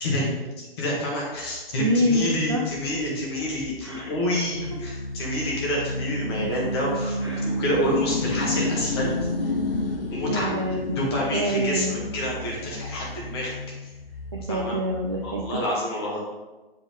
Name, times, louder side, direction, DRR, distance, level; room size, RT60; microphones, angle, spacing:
voice 1, 0.0-9.1 9.4-9.5 10.1-10.5 10.9-13.5 13.8-13.9 14.5-14.8 15.2-16.2, left 1 dB, 25° left, -3 dB, 1.6 m, -28 dB
sound 1, 1.4-15.6, left 1 dB, 65° left, 0.8 m, -31 dB
voice 2, 1.8-2.6 3.8-4.1 7.2-7.6 10.3-12.0 14.3-15.6, equal, 25° right, -1 dB, 0.3 m, -26 dB
7.2 x 3.9 x 3.7 m, 1.2 s
figure-of-eight pair, 140°, 30 cm